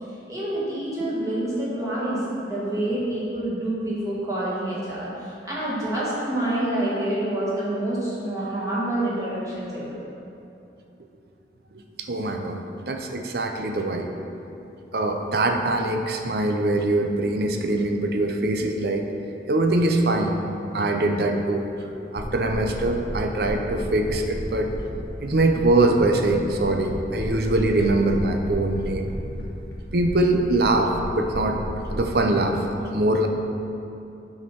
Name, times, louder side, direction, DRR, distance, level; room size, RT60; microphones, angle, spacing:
voice 1, 0.3-10.0, right 1 dB, 20° right, -8 dB, 1.7 m, -27 dB
voice 2, 12.1-14.1 14.9-19.1 19.5-20.4 20.7-21.6 22.1-24.7 25.2-29.1 29.9-31.6 31.9-32.6 32.9-33.3, right 2 dB, 60° right, 4 dB, 0.6 m, -23 dB
sound 1, 22.2-32.0, equal, 85° left, 1.4 m, -34 dB
7.7 x 4.3 x 5.9 m, 2.8 s
head